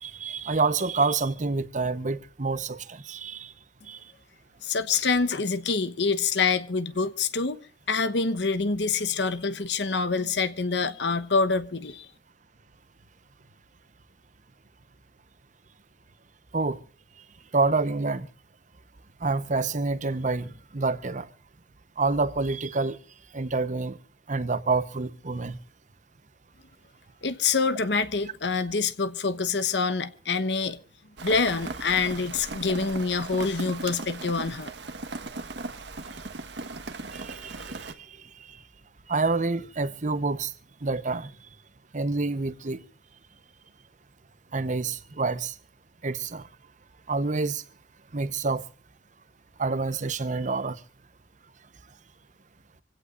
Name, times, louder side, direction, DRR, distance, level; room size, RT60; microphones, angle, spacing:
voice 1, 0.0-3.5 3.9-4.0 16.5-16.8 17.5-18.3 19.2-21.3 22.0-23.0 23.3-24.0 24.3-25.6 37.1-37.9 39.1-40.5 40.8-41.3 41.9-42.8 44.5-45.5 46.0-46.5 47.1-47.6 48.1-48.6 49.6-50.8, right 3 dB, 45° right, 1.0 m, -27 dB
voice 2, 4.6-12.1 27.2-30.8 31.2-34.7, left 4 dB, 85° left, 1.1 m, -26 dB
Rain, 31.2-37.9, right 3 dB, 85° right, 1.4 m, -38 dB
26.0 x 16.5 x 2.5 m
head